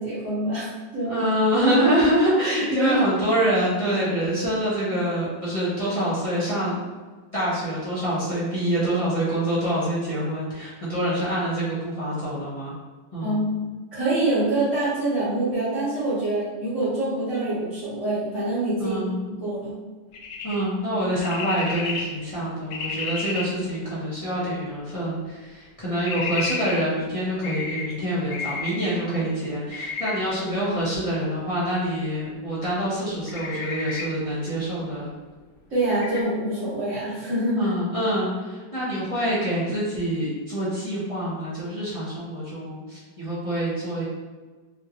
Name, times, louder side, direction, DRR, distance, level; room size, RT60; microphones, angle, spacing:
voice 1, 0.0-1.2 2.7-3.0 13.2-13.7 13.9-19.0 19.4-19.7 35.7-37.6, right 1 dB, 45° right, -12 dB, 1.5 m, -25 dB
voice 2, 1.1-6.8 7.3-12.7 13.1-13.4 18.8-19.2 20.4-35.1 37.6-44.0, equal, 45° left, -10 dB, 0.4 m, -26 dB
sound 1, 20.1-20.6 21.2-22.0 22.7-23.4 26.0-26.7 27.4-27.8 28.3-28.7 29.7-30.1 33.3-34.0 35.9-36.2, left 4 dB, 65° left, 0.9 m, -31 dB
3.6 x 2.5 x 2.9 m, 1.3 s
omnidirectional pair, 2.0 m